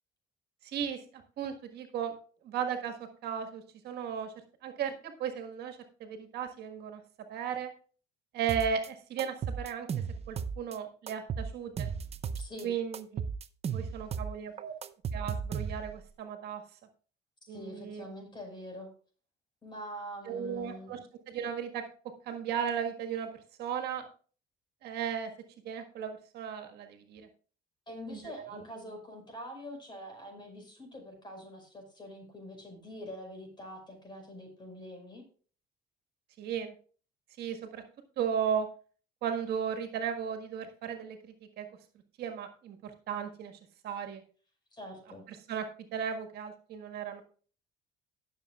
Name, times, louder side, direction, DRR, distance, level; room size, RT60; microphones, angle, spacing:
voice 1, 0.6-1.0 1.4-2.1 2.4-2.9 3.2-4.3 4.6-7.0 7.3-7.7 8.3-9.9 10.3-11.9 12.6-13.0 13.7-14.7 15.1-16.6 17.5-18.0 20.3-21.0 21.3-21.8 22.2-23.3 23.6-24.1 24.8-25.3 25.6-27.3 28.1-28.6 36.4-36.7 37.4-37.8 38.2-38.7 39.2-41.7 42.2-43.5 43.8-44.2 45.3-47.2, right 8 dB, 75° right, 6 dB, 1.6 m, -35 dB
sound 1, 8.5-8.9 9.2-10.8 11.1-12.6 12.9-16.0, right 6 dB, 40° right, 0.7 m, -35 dB
voice 2, 12.4-12.7 14.0-14.1 17.5-18.9 19.6-21.0 27.9-35.2 44.7-45.3, equal, 25° left, 4 dB, 5.3 m, -45 dB
18.0 x 7.2 x 2.4 m, 0.41 s
cardioid pair, 110°, 17 cm